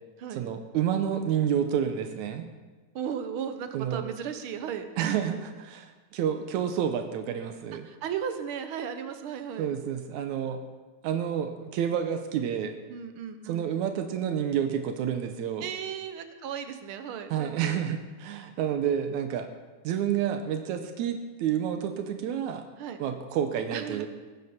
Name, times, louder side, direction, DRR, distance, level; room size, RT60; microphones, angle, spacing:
voice 1, 0.3-2.5 3.7-4.0 5.0-7.9 9.6-10.6 11.0-12.8 13.5-15.7 17.3-19.5 19.8-22.6 23.0-24.1, right 9 dB, 85° right, 6 dB, 2.2 m, -29 dB
voice 2, 2.9-5.5 7.8-9.7 12.9-13.6 15.6-17.8 22.8-23.0 23.7-24.1, right 8 dB, 65° right, 8 dB, 1.3 m, -36 dB
20.5 x 9.6 x 4.3 m, 1.3 s
omnidirectional pair, 3.4 m